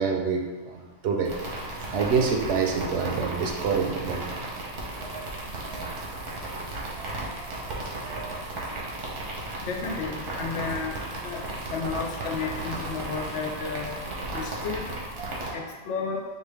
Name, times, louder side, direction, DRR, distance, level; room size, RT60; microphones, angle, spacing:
voice 1, 0.0-1.3 1.8-4.4 5.0-5.3 5.7-5.9 6.3-6.5 7.0-8.4 15.2-15.5, right 5 dB, 70° right, 2 dB, 0.8 m, -28 dB
sound 1, 1.3-15.5, right 2 dB, 85° right, 1.2 m, -35 dB
voice 2, 9.6-14.0 14.3-14.9 15.5-16.2, left 5 dB, 80° left, 1 dB, 0.9 m, -33 dB
5.0 x 2.3 x 3.4 m, 1.3 s
omnidirectional pair, 1.2 m